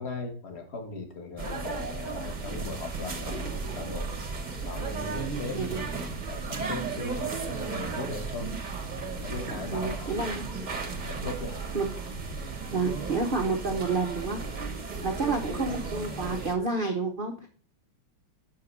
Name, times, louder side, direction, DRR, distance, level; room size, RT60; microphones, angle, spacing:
voice 1, 0.0-4.2 4.6-5.8 6.3-8.5 9.2-10.1 10.8-11.7, left 3 dB, 35° left, 5 dB, 1.2 m, -38 dB
sound 1, 1.4-16.5, right 4 dB, 40° right, 0.6 m, -35 dB
voice 2, 5.5-5.8 9.7-10.3 11.7-11.9 12.7-14.7 15.0-17.5, right 3 dB, 75° right, 3 dB, 0.4 m, -29 dB
5.9 x 5.6 x 5.2 m, 0.43 s
omnidirectional pair, 2.2 m